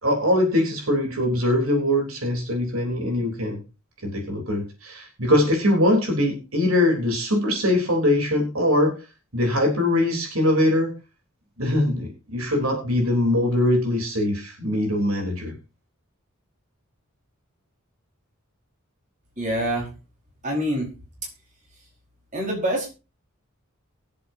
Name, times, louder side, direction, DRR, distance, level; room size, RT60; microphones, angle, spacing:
voice 1, 0.0-3.6 4.0-9.0 9.3-10.9 11.6-15.5, left 1 dB, 75° right, 2 dB, 3.6 m, -22 dB
voice 2, 19.4-19.9 20.4-20.9 22.3-22.9, equal, 35° right, -1 dB, 4.7 m, -25 dB
23.0 x 7.8 x 2.8 m, 0.29 s
head